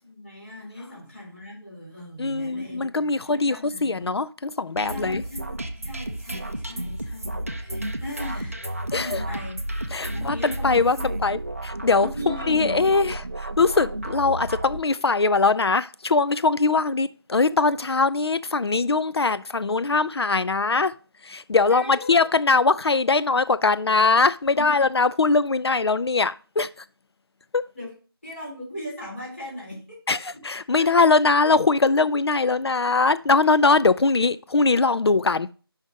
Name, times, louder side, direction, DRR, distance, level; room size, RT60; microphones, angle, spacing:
voice 1, 0.0-4.1 4.9-9.6 10.1-11.1 12.0-12.7 21.7-22.2 27.7-27.9 28.2-30.0 30.3-30.4 30.7-30.9, left 1 dB, 30° left, 3.4 m, -38 dB
voice 2, 2.2-5.2 8.9-9.2 9.9-20.9 21.2-26.7 27.5-27.6 30.1-35.5, left 3 dB, 85° left, 0.4 m, -21 dB
sound 1, 4.8-14.8, right 1 dB, 35° right, 0.5 m, -32 dB
5.6 x 5.0 x 5.0 m
figure-of-eight pair, 175°, 13 cm